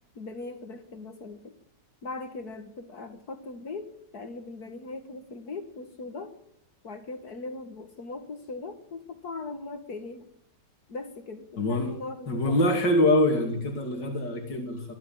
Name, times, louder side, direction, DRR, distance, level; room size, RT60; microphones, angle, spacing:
voice 1, 0.2-1.5 2.0-6.3 6.8-10.3 10.9-12.6, left 3 dB, 60° left, 7 dB, 2.2 m, -39 dB
voice 2, 11.6-11.9 12.3-14.9, left 1 dB, 90° left, 3 dB, 3.2 m, -24 dB
25.0 x 12.5 x 8.8 m, 0.71 s
omnidirectional pair, 1.8 m